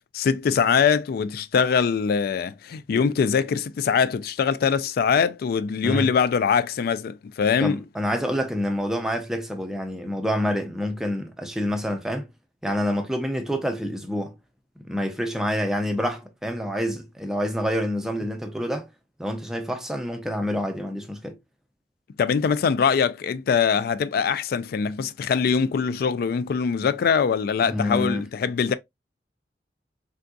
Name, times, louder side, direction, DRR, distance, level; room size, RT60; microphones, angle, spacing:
voice 1, 0.1-7.8 22.2-28.8, left 6 dB, 55° left, 0.3 m, -23 dB
voice 2, 7.6-12.3 12.6-14.4 14.8-18.9 19.2-21.4 27.7-28.3, equal, 5° right, 0.5 m, -27 dB
3.5 x 2.6 x 2.2 m
head